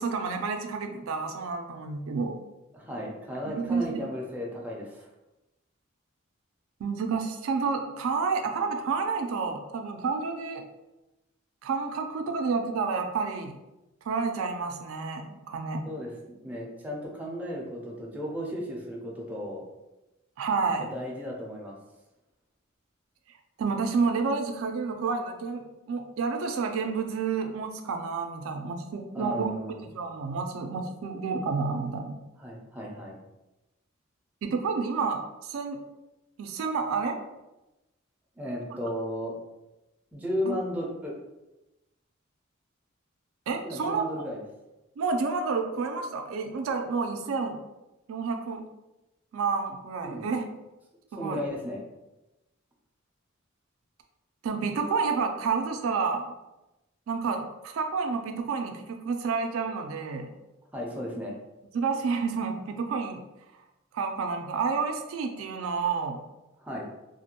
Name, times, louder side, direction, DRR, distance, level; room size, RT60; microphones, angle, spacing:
voice 1, 0.0-2.4 3.5-3.9 6.8-10.6 11.6-13.5 14.0-15.8 20.4-20.9 23.6-29.5 29.8-32.2 34.4-35.8 36.4-37.2 40.5-40.6 43.5-44.0 45.0-47.6 48.1-48.6 49.3-50.4 51.1-51.4 54.4-56.3 57.1-60.3 61.7-63.2 63.9-66.2, right 5 dB, 80° right, 5 dB, 0.3 m, -29 dB
voice 2, 2.7-5.1 15.8-19.6 20.8-21.8 29.1-29.8 32.4-33.2 38.4-39.3 40.1-41.2 43.6-44.4 50.0-50.3 51.2-51.8 60.7-61.3 66.6-66.9, equal, 10° right, -3 dB, 0.4 m, -35 dB
2.4 x 2.1 x 2.8 m, 0.98 s
head